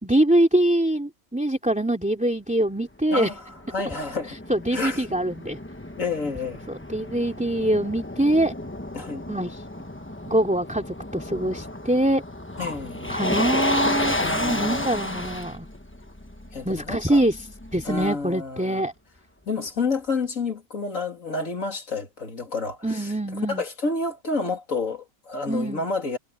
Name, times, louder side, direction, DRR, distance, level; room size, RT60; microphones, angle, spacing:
voice 1, 0.0-3.3 4.5-5.6 6.2-6.3 6.7-8.5 9.3-9.6 10.3-12.2 13.1-15.7 16.6-17.4 17.7-18.9 22.8-23.6 25.5-25.8, right 1 dB, 5° right, 2.8 m, -24 dB
Motor vehicle (road), 3.0-18.1, left 1 dB, 10° left, 1.1 m, -32 dB
voice 2, 3.1-3.4 3.7-4.4 4.7-5.1 6.0-6.6 8.9-9.2 12.6-13.2 14.2-15.0 16.5-17.2 17.8-18.8 19.5-26.2, left 3 dB, 85° left, 3.3 m, -29 dB
omnidirectional pair, 1.4 m